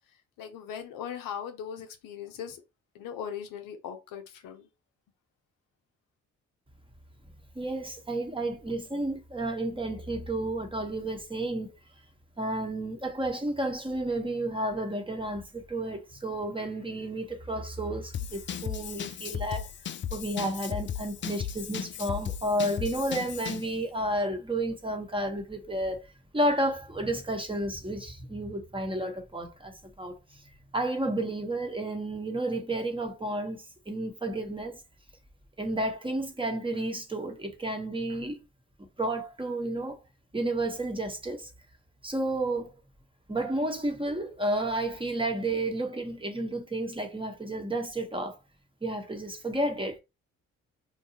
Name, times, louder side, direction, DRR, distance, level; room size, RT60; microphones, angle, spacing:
voice 1, 0.4-2.6 2.9-4.7, left 8 dB, 70° left, 0.7 m, -39 dB
voice 2, 7.5-11.7 12.4-19.7 20.1-26.0 26.3-30.1 30.7-34.8 35.6-38.4 39.0-40.0 40.3-41.5 42.0-42.7 43.3-48.4 48.8-50.0, right 1 dB, 15° right, 1.0 m, -31 dB
Drum kit / Drum, 18.1-23.7, left 9 dB, 35° left, 0.4 m, -36 dB
2.8 x 2.3 x 2.8 m
hypercardioid pair, 45°, 35 cm